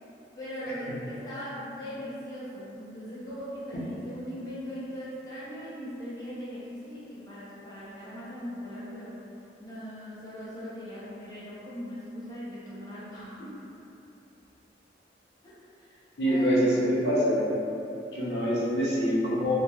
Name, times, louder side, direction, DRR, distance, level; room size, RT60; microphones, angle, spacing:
voice 1, 0.3-9.2 9.6-13.8 15.4-16.8, equal, 20° left, -10 dB, 0.6 m, -40 dB
voice 2, 16.2-17.5 18.1-19.5, equal, 75° left, -7 dB, 0.6 m, -25 dB
2.8 x 2.2 x 2.2 m, 2.8 s
head